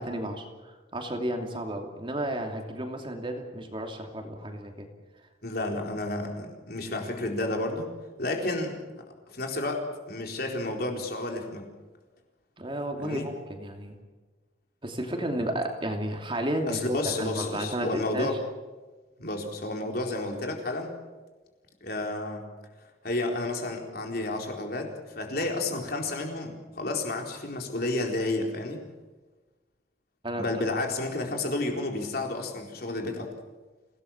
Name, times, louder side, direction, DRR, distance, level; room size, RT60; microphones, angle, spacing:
voice 1, 0.0-4.9 12.6-13.9 14.8-18.3 30.2-30.4, right 1 dB, 30° right, 3 dB, 2.9 m, -32 dB
voice 2, 5.4-7.9 8.2-8.8 9.3-11.6 13.0-13.3 16.7-18.4 19.2-20.9 21.8-22.4 23.0-28.8 30.4-33.3, left 2 dB, 55° left, 2 dB, 4.2 m, -31 dB
27.5 x 18.0 x 7.3 m, 1.2 s
head